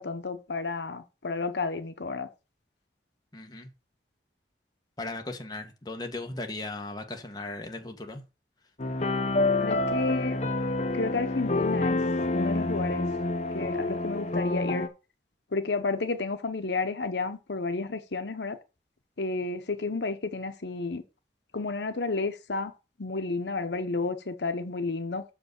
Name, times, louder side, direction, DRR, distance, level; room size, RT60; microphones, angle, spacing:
voice 1, 0.0-2.3 9.5-10.4 10.9-12.0 12.3-13.1 13.5-14.9 15.5-18.6 19.2-21.0 21.5-22.7 23.0-25.2, left 3 dB, 75° left, 0.9 m, -31 dB
voice 2, 3.3-3.7 5.0-8.2, left 2 dB, 25° left, 1.2 m, -37 dB
sound 1, 8.8-14.9, left 2 dB, 40° left, 0.9 m, -27 dB
6.6 x 4.9 x 6.5 m
head